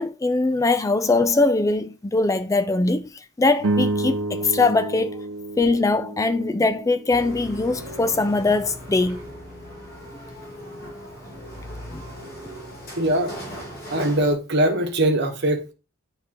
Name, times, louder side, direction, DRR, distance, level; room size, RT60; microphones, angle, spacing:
voice 1, 0.0-5.2 5.6-9.2 11.9-12.0, left 3 dB, 15° left, 0.3 m, -21 dB
sound 1, 3.6-8.1, right 2 dB, 85° right, 0.8 m, -29 dB
sound 2, 7.1-14.3, equal, 45° left, 1.9 m, -38 dB
voice 2, 12.9-13.3 13.9-15.7, right 1 dB, 55° right, 1.1 m, -21 dB
9.6 x 3.7 x 2.9 m
head